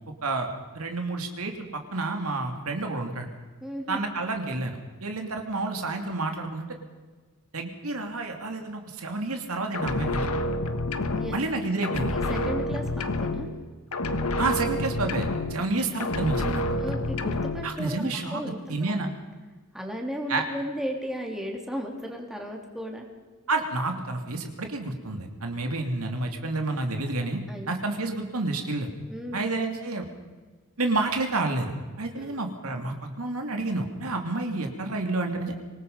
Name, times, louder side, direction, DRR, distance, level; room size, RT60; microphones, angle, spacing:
voice 1, 0.7-3.3 3.9-6.7 7.5-10.4 11.3-12.1 14.4-16.9 17.6-18.4 18.7-19.1 20.3-20.4 23.5-27.4 27.7-28.9 29.3-30.1 30.8-35.6, right 2 dB, 75° right, 4 dB, 2.7 m, -29 dB
voice 2, 3.6-4.0 11.1-11.4 11.6-11.7 12.0-13.5 16.8-18.9 19.7-23.1 27.5-27.7 29.1-29.4 32.2-32.3, equal, ahead, 1 dB, 3.1 m, -35 dB
sound 1, 9.7-11.6 11.8-13.7 13.9-15.7 16.0-17.7, left 2 dB, 80° left, 1.6 m, -28 dB
25.5 x 19.5 x 5.5 m, 1.4 s
head